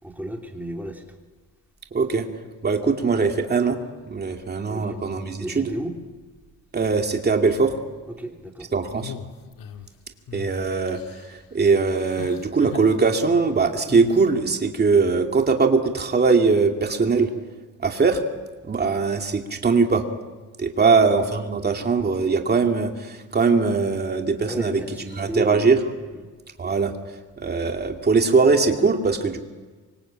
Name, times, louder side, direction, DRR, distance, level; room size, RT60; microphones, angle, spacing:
voice 1, 0.0-1.2 4.7-5.0 5.4-6.0 8.1-8.7 20.8-21.1 24.5-26.3, right 1 dB, 5° right, 2 dB, 3.1 m, -33 dB
voice 2, 1.9-2.3 2.6-3.8 4.1-5.7 6.7-7.8 8.7-9.1 10.3-11.0 11.3-17.3 17.8-18.2 18.6-20.0 20.6-24.8 25.2-25.8 26.6-26.9 27.4-29.4, right 4 dB, 30° right, 3 dB, 2.5 m, -21 dB
sound 1, 9.0-9.9 10.3-10.5 10.9-11.4 12.0-13.0 13.9-14.2, left 7 dB, 80° left, 1.9 m, -39 dB
27.5 x 24.5 x 8.8 m, 1.4 s
wide cardioid pair, 170°, 33 cm